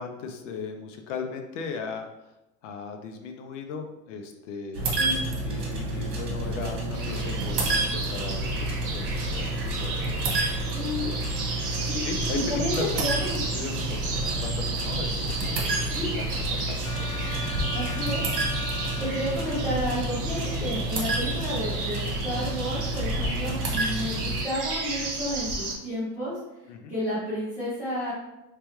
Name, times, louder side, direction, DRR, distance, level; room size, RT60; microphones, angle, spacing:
voice 1, 0.0-2.1 2.6-4.8 5.4-10.1 12.1-12.9 13.4-17.2 26.7-26.9, left 5 dB, 50° left, 5 dB, 0.5 m, -37 dB
sound 1, 4.7-24.4, right 2 dB, 70° right, 1.4 m, -30 dB
sound 2, 6.9-25.7, right 2 dB, 35° right, 0.7 m, -33 dB
voice 2, 10.7-11.1 11.8-12.0 12.3-13.8 15.8-16.1 17.7-18.2 18.6-26.4 26.9-28.1, equal, 5° right, -13 dB, 0.4 m, -31 dB
sound 3, 16.8-20.7, left 5 dB, 70° left, 1.0 m, -40 dB
3.4 x 3.3 x 3.0 m, 0.93 s
supercardioid pair, 165°, 47 cm